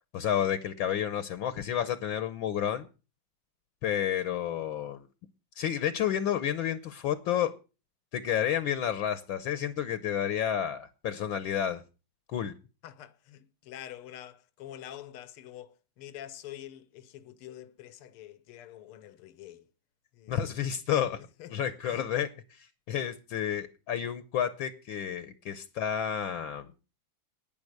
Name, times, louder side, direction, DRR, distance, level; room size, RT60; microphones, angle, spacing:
voice 1, 0.1-2.9 3.8-5.0 5.6-7.5 8.1-11.8 12.3-12.5 20.3-21.2 21.5-26.6, left 9 dB, 70° left, 1.6 m, -30 dB
voice 2, 12.8-19.7 20.1-20.6 21.4-21.5 21.9-22.1, left 11 dB, 85° left, 1.8 m, -46 dB
11.0 x 9.6 x 6.5 m
omnidirectional pair, 2.4 m